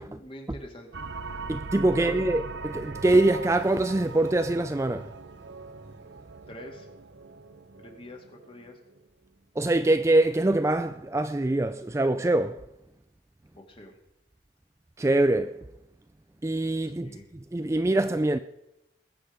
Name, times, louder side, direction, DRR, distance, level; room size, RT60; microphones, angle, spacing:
voice 1, 0.0-1.1 1.9-2.3 6.5-6.9 7.8-8.8 13.5-13.9 16.9-17.3, equal, 30° left, 2.2 m, -44 dB
sound 1, 0.9-9.0, right 4 dB, 80° right, 0.8 m, -40 dB
voice 2, 1.5-5.1 9.6-12.6 15.0-15.6 16.4-17.1 17.5-18.4, right 2 dB, 15° right, 0.4 m, -24 dB
20.5 x 7.8 x 5.0 m
head